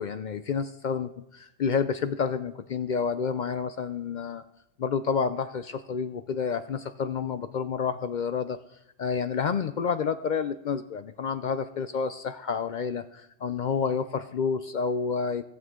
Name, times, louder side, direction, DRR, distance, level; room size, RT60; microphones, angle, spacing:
voice 1, 0.0-4.4 4.8-8.6 9.0-15.4, left 6 dB, 65° left, 11 dB, 0.4 m, -29 dB
17.0 x 7.4 x 3.7 m, 0.91 s
omnidirectional pair, 1.3 m